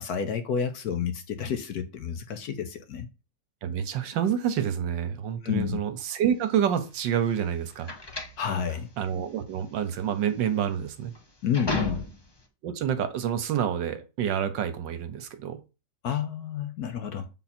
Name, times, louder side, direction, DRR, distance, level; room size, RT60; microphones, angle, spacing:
voice 1, 0.0-3.1 5.4-5.8 8.4-8.9 11.4-12.1 16.0-17.3, left 7 dB, 65° left, 1.1 m, -30 dB
voice 2, 3.6-7.9 9.0-11.1 12.6-15.6, right 9 dB, 75° right, 1.5 m, -28 dB
sound 1, 6.5-12.5, left 1 dB, 30° left, 0.4 m, -36 dB
7.1 x 4.0 x 4.3 m
omnidirectional pair, 2.0 m